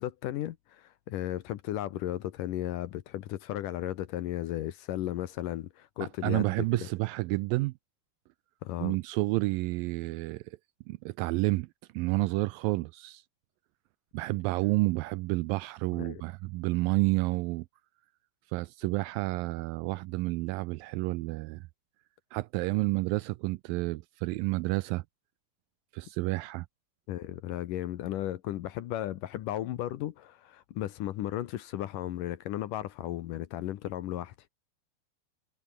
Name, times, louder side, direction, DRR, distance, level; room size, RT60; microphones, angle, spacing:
voice 1, 0.0-6.7 8.6-9.0 15.9-16.2 27.1-34.5, left 13 dB, 70° left, 2.3 m, -35 dB
voice 2, 6.2-7.7 8.8-10.4 10.9-11.7 11.9-13.2 14.1-17.7 18.5-21.6 22.3-25.0 25.9-26.7, right 21 dB, 80° right, 2.1 m, -30 dB
omnidirectional pair, 4.4 m